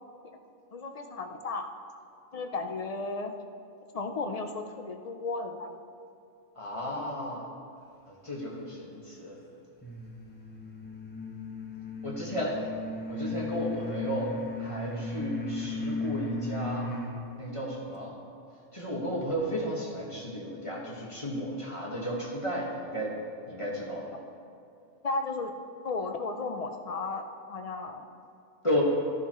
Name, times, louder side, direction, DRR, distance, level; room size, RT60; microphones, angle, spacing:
voice 1, 0.7-1.7 2.3-3.3 3.9-5.7 25.0-25.5 25.8-28.1, left 3 dB, 50° left, 5 dB, 0.4 m, -34 dB
voice 2, 6.5-7.4 8.1-9.4 12.0-12.6 13.1-16.9 17.4-18.1 18.7-23.1 23.5-24.2 28.6-28.8, equal, 25° left, -3 dB, 1.5 m, -33 dB
sound 1, 9.8-17.2, left 2 dB, 10° left, 1.1 m, -36 dB
12.5 x 11.0 x 3.0 m, 2.5 s
omnidirectional pair, 1.3 m